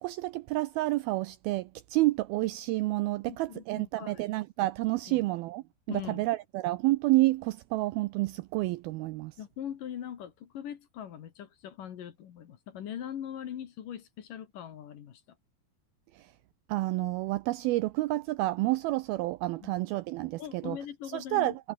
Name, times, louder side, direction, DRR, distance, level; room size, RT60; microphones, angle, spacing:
voice 1, 0.0-5.6 5.9-9.3 16.7-20.8 21.1-21.6, right 19 dB, 85° right, 2.2 m, -29 dB
voice 2, 3.2-4.2 5.1-5.3 5.9-6.3 9.4-15.2 19.6-19.7 20.4-21.6, left 9 dB, 60° left, 3.1 m, -41 dB
omnidirectional pair, 5.0 m